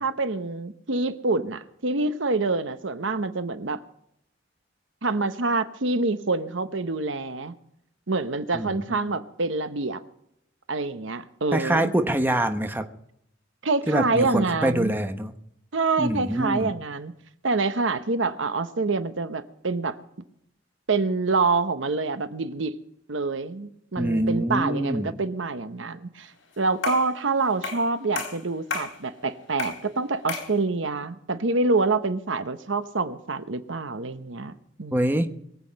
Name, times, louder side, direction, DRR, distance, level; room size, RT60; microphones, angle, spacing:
voice 1, 0.0-3.8 5.0-7.5 8.1-10.0 10.7-11.9 13.6-14.9 15.7-17.1 17.4-20.0 20.9-22.8 23.1-26.3 26.6-35.3, right 3 dB, 70° right, 1.0 m, -26 dB
voice 2, 8.5-9.0 11.5-12.8 13.9-15.3 16.0-16.7 24.0-25.1 34.9-35.3, right 1 dB, 10° right, 1.0 m, -25 dB
sound 1, 26.8-27.1 27.6-27.9 28.2-29.0 29.6-29.8 30.3-30.5, left 4 dB, 80° left, 4.0 m, -31 dB
23.0 x 8.2 x 5.3 m
head